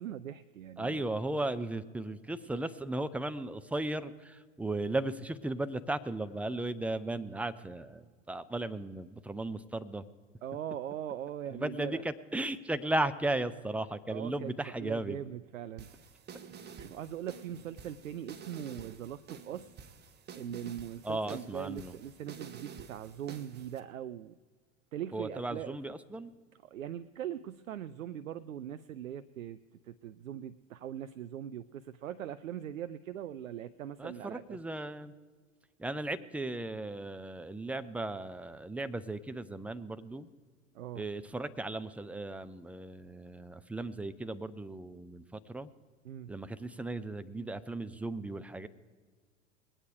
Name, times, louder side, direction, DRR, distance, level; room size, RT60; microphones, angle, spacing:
voice 1, 0.0-1.1 10.4-12.0 14.1-14.5 14.8-15.9 16.8-19.7 20.3-24.4 24.9-25.8 26.6-29.6 29.8-34.6 40.7-41.1 46.0-46.3, right 10 dB, 90° right, 14 dB, 0.5 m, -41 dB
voice 2, 0.8-10.1 11.5-15.2 21.0-22.0 25.1-26.3 34.0-35.1 35.8-40.3 41.0-45.7 46.3-48.7, right 2 dB, 5° right, 11 dB, 0.4 m, -36 dB
sound 1, 15.8-23.8, right 7 dB, 25° right, 1.0 m, -49 dB
21.5 x 8.8 x 4.8 m, 1.5 s
hypercardioid pair, 90°, 38 cm